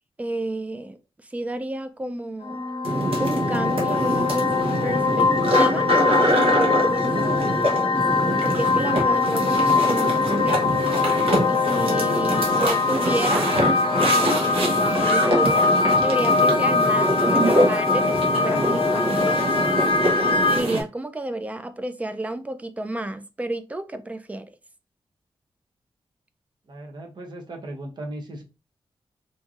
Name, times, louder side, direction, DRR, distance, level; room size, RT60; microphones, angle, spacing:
voice 1, 0.2-1.0 1.3-2.7 3.2-4.5 4.8-5.9 6.3-8.0 8.4-10.8 11.5-13.5 14.0-15.6 16.0-20.0 20.5-24.5, right 1 dB, 15° right, 0.4 m, -31 dB
Wind instrument woodwind instrument, 2.4-10.5, left 1 dB, 5° left, 1.2 m, -37 dB
sound 1, 2.5-20.6, left 4 dB, 70° left, 0.5 m, -23 dB
sound 2, 2.8-20.8, right 1 dB, 85° right, 0.9 m, -24 dB
voice 2, 26.7-28.4, right 1 dB, 50° right, 0.8 m, -37 dB
3.1 x 2.6 x 2.4 m
wide cardioid pair, 100°, 9 cm